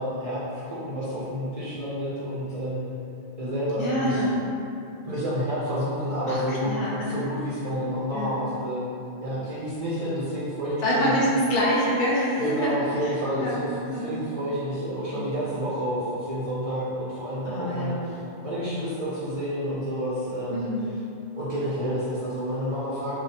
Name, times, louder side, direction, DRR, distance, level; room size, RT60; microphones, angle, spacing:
voice 1, 0.0-2.9 3.4-4.3 5.0-6.8 7.1-8.8 9.2-11.1 12.4-20.7 21.3-23.2, equal, 65° right, -10 dB, 0.3 m, -29 dB
voice 2, 3.8-4.4 6.3-7.2 8.1-8.4 10.8-12.7 13.0-13.6 13.9-14.2 15.1-15.4 17.4-18.1 20.5-21.0, equal, 65° left, -6 dB, 0.8 m, -26 dB
2.6 x 2.1 x 2.7 m, 2.7 s
omnidirectional pair, 1.1 m